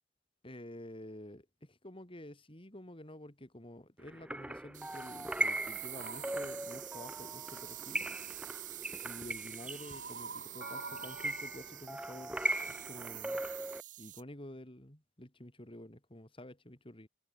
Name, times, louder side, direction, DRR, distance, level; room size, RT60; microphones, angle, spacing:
voice 1, 0.4-8.0 9.0-12.4 12.7-13.4 14.0-17.1, left 1 dB, 30° left, 3.3 m, -50 dB
sound 1, 4.1-13.8, right 1 dB, 5° right, 0.7 m, -39 dB
sound 2, 4.7-14.2, right 14 dB, 45° right, 0.8 m, -47 dB
sound 3, 5.9-6.5 9.8-12.5, right 4 dB, 65° right, 2.6 m, -47 dB
head